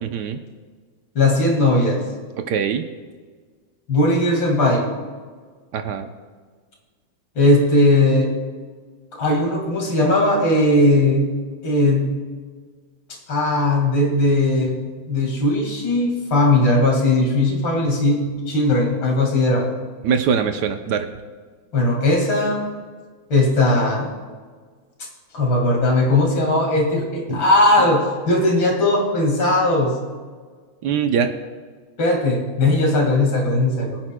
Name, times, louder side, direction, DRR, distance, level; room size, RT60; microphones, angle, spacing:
voice 1, 0.0-0.4 2.5-2.8 5.7-6.1 20.0-21.1 30.8-31.3, right 7 dB, 70° right, 7 dB, 1.2 m, -22 dB
voice 2, 1.2-2.1 3.9-4.9 7.4-8.4 9.1-11.4 11.6-12.2 13.3-19.7 21.7-22.7 23.3-24.1 25.3-30.0 32.0-34.0, left 2 dB, 90° left, 0 dB, 2.8 m, -18 dB
23.5 x 8.8 x 2.2 m, 1.5 s
omnidirectional pair, 2.1 m